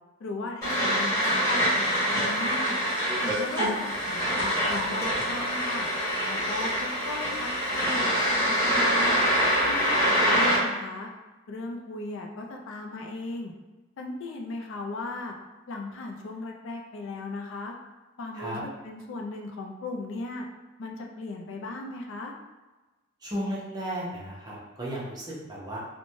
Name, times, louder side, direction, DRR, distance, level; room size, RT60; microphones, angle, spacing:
voice 1, 0.2-2.8 3.2-5.9 6.3-9.2 9.6-11.1 11.5-13.5 14.0-15.4 15.7-17.7 18.2-20.5 20.8-22.3, left 2 dB, 60° left, 1 dB, 0.4 m, -37 dB
sound 1, 0.6-10.6, equal, 15° left, 1.3 m, -25 dB
voice 2, 23.2-25.8, equal, 20° right, -5 dB, 0.6 m, -34 dB
3.0 x 2.1 x 2.6 m, 1.2 s
head